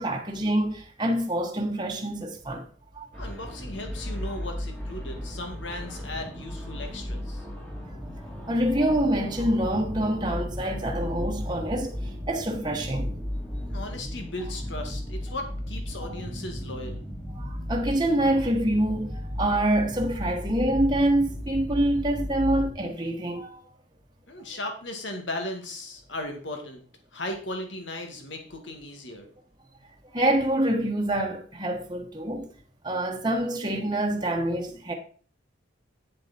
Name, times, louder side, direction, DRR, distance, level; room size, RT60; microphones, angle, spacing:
voice 1, 0.0-2.6 2.9-3.1 8.5-12.0 12.3-13.1 17.4-23.5 30.1-32.5 32.8-34.9, right 1 dB, 25° right, 1.3 m, -26 dB
sound 1, 3.1-22.7, equal, 5° left, 1.9 m, -35 dB
voice 2, 3.2-7.5 13.7-17.0 24.3-26.8 27.1-29.3, left 1 dB, 75° left, 2.3 m, -37 dB
8.9 x 7.5 x 4.3 m
head